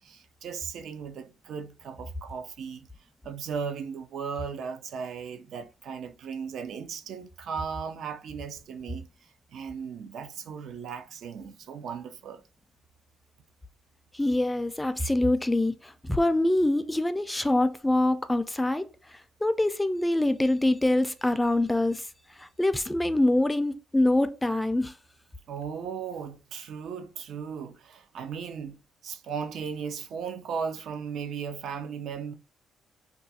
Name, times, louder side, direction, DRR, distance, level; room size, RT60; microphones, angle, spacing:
voice 1, 0.0-2.9 3.2-12.4 25.5-28.8 29.0-32.3, right 6 dB, 70° right, 0.5 m, -36 dB
voice 2, 14.1-18.9 19.4-22.0 22.4-24.9, left 1 dB, 10° left, 0.3 m, -25 dB
2.4 x 2.3 x 4.0 m
cardioid pair, 90°, 0 cm